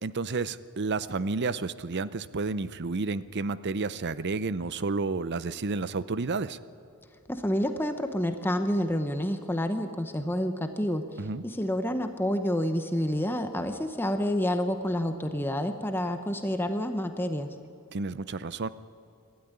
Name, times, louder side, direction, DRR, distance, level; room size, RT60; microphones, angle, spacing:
voice 1, 0.0-6.6 11.2-11.4 17.9-18.7, right 3 dB, 50° right, 16 dB, 0.7 m, -31 dB
voice 2, 7.3-11.0 11.4-17.5, equal, 10° left, 7 dB, 0.9 m, -28 dB
26.0 x 12.5 x 9.9 m, 2.6 s
head